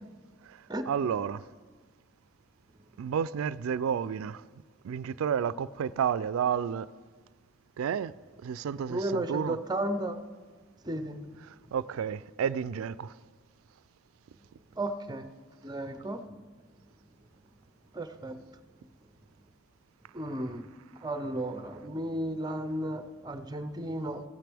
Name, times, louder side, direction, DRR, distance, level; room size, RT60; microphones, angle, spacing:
voice 1, 0.9-1.4 3.0-4.4 4.8-6.9 7.8-8.1 8.4-9.6 11.7-13.1, right 7 dB, 90° right, 0.3 m, -30 dB
voice 2, 8.9-10.2 10.8-11.2 14.8-15.3 15.6-16.4 17.9-18.4 20.1-20.7 21.0-24.2, right 1 dB, 20° right, 0.6 m, -34 dB
15.5 x 9.2 x 3.4 m
head